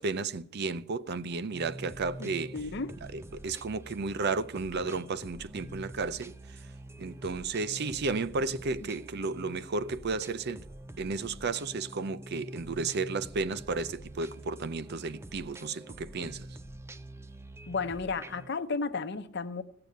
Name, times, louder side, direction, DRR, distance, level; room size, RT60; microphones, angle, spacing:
voice 1, 0.0-2.6 3.1-6.3 7.0-10.6 11.0-16.5, right 4 dB, 55° right, 0.5 m, -33 dB
sound 1, 1.5-18.5, right 1 dB, 15° right, 0.5 m, -46 dB
voice 2, 2.2-2.9 8.8-8.9 17.7-19.6, left 4 dB, 60° left, 0.8 m, -33 dB
16.0 x 6.8 x 9.2 m
head